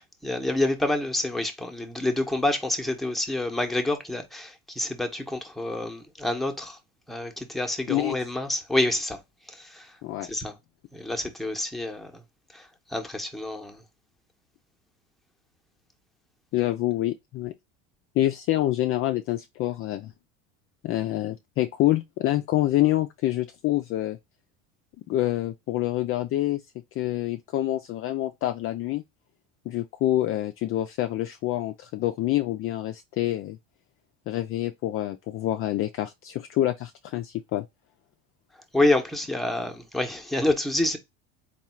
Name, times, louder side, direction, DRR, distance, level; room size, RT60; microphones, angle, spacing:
voice 1, 0.2-6.8 7.1-9.2 9.5-9.9 10.3-10.6 10.9-12.2 12.5-13.8 38.7-41.0, left 2 dB, ahead, 0.8 m, -27 dB
voice 2, 16.5-17.5 18.2-20.1 20.8-24.2 25.1-26.6 27.0-29.0 29.7-33.6 34.3-37.7, left 14 dB, 40° left, 0.4 m, -26 dB
3.7 x 2.4 x 4.3 m
supercardioid pair, 110°, 36 cm